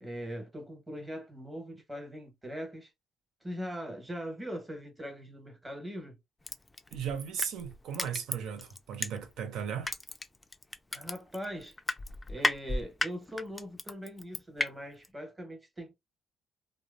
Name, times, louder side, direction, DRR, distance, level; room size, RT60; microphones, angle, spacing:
voice 1, 0.0-2.9 3.4-6.2 10.9-11.8 12.3-15.9, equal, 15° right, 1.1 m, -41 dB
Crushing, 6.5-9.5 9.8-14.7 15.0-15.1, left 2 dB, 20° left, 0.3 m, -34 dB
voice 2, 6.9-9.9, right 7 dB, 85° right, 0.6 m, -36 dB
2.8 x 2.0 x 2.4 m
cardioid pair, 90°, 0 cm